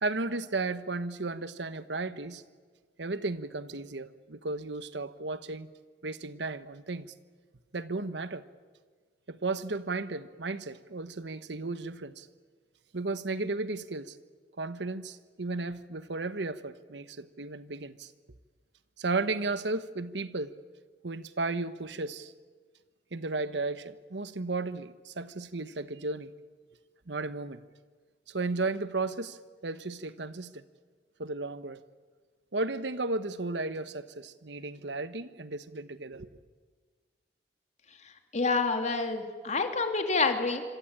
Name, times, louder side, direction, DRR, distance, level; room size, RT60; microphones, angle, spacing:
voice 1, 0.0-2.4 3.0-5.7 6.0-7.1 7.7-8.5 9.3-12.3 12.9-14.2 14.6-18.1 19.0-20.6 21.0-22.3 23.1-26.3 27.1-27.6 28.3-30.6 31.2-31.8 32.5-36.3, right 3 dB, 70° right, 1.1 m, -34 dB
voice 2, 38.3-40.6, left 4 dB, 40° left, 2.7 m, -28 dB
26.0 x 26.0 x 8.8 m
head